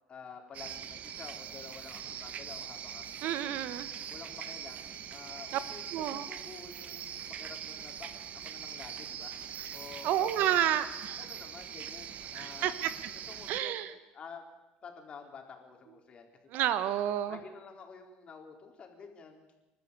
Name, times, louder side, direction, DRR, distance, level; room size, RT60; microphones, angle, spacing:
voice 1, 0.1-3.6 4.1-8.1 8.4-9.3 9.7-10.3 11.2-12.8 13.3-14.4 14.8-16.3 16.6-16.8 17.3-19.5, left 5 dB, 35° left, 3 dB, 4.1 m, -50 dB
sound 1, 0.5-13.6, right 9 dB, 45° right, 1.2 m, -42 dB
voice 2, 3.2-3.9 5.5-5.6 5.9-6.3 10.0-11.2 12.3-12.9 13.5-13.9 16.5-17.4, right 11 dB, 65° right, 13 dB, 1.3 m, -30 dB
29.0 x 12.5 x 8.3 m, 1.1 s
cardioid pair, 125°, 3 cm